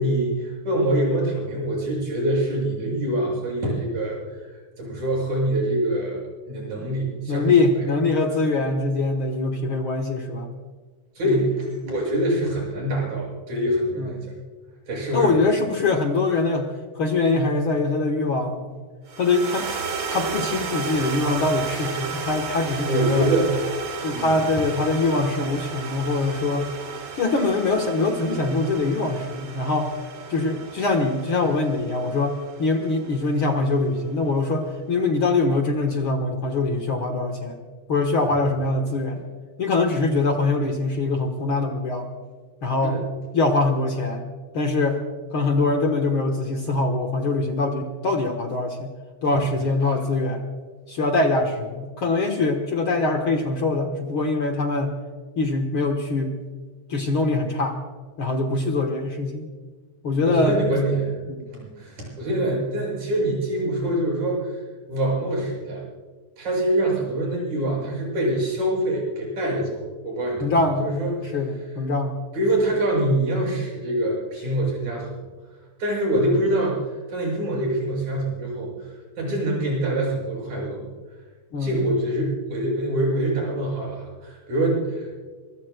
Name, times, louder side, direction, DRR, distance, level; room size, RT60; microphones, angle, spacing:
voice 1, 0.0-4.4 4.8-7.5 7.8-7.9 11.2-14.2 14.9-15.3 22.9-23.6 24.1-24.4 42.8-43.0 49.2-49.4 60.2-61.1 61.5-64.6 64.9-65.8 66.4-71.1 72.3-75.2 75.8-78.7 79.2-80.9 81.6-85.2, right 1 dB, 70° right, -3 dB, 8.0 m, -25 dB
voice 2, 7.3-10.5 11.2-11.5 14.0-14.3 15.1-16.7 16.9-18.7 19.2-19.7 20.1-23.3 24.0-26.7 27.2-29.9 30.3-37.6 37.9-39.2 39.6-42.1 42.6-43.0 43.3-44.2 44.5-45.0 45.3-48.9 49.2-50.4 50.9-54.9 55.4-56.3 56.9-57.8 58.2-59.5 60.0-60.6 61.3-61.4 70.4-70.9 71.3-72.2 81.5-81.9, left 3 dB, 55° left, 3 dB, 1.7 m, -23 dB
sound 1, 19.1-33.5, right 5 dB, 50° right, 2.7 m, -33 dB
25.0 x 23.5 x 2.2 m, 1.5 s
omnidirectional pair, 3.5 m